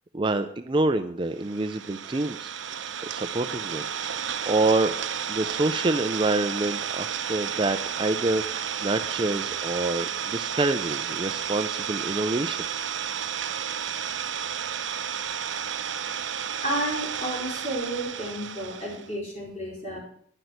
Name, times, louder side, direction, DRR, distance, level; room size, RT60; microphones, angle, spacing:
voice 1, 0.1-2.5 3.1-4.9 5.3-12.7, right 2 dB, 25° right, 9 dB, 0.4 m, -27 dB
Idling, 1.4-19.1, right 8 dB, 75° right, 0.7 m, -32 dB
voice 2, 16.6-20.0, right 1 dB, 35° left, -3 dB, 4.5 m, -31 dB
11.0 x 6.0 x 8.0 m, 0.62 s
head